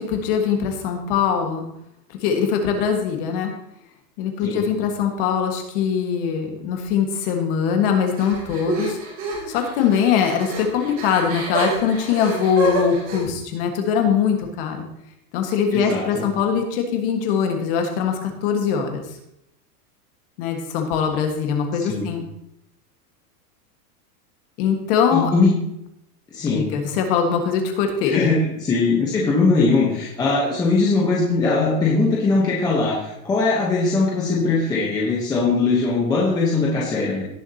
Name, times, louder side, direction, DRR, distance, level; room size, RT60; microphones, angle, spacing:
voice 1, 0.0-1.7 2.1-3.5 4.2-9.0 9.5-14.9 15.3-19.0 20.4-22.2 24.6-25.3 26.5-28.3, left 7 dB, 35° left, 3 dB, 1.7 m, -22 dB
sound 1, 8.2-13.2, right 3 dB, 25° right, 2.8 m, -28 dB
voice 2, 15.7-16.2 21.8-22.1 25.1-25.6 26.3-26.7 28.1-37.2, left 3 dB, 10° left, -4 dB, 0.9 m, -20 dB
17.5 x 7.1 x 2.9 m, 0.80 s
supercardioid pair, 180°, 49 cm